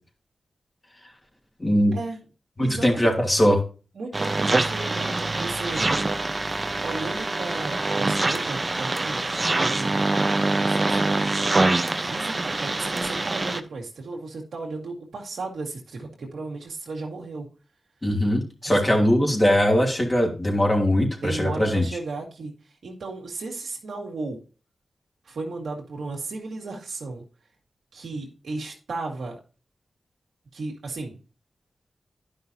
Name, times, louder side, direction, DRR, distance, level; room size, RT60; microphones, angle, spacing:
voice 1, 1.6-2.0 2.6-3.6 18.0-21.8, equal, 30° left, 1 dB, 2.6 m, -21 dB
voice 2, 2.6-3.1 4.0-5.9 6.8-9.2 9.6-10.0 10.5-11.3 12.0-17.5 18.6-19.2 21.2-22.5 22.8-24.4 25.3-27.2 27.9-29.4 30.5-31.2, right 3 dB, 80° right, -1 dB, 1.8 m, -35 dB
sound 1, 4.1-13.6, right 2 dB, 35° right, 0.8 m, -24 dB
10.5 x 5.6 x 2.7 m, 0.34 s
cardioid pair, 45°, 0 cm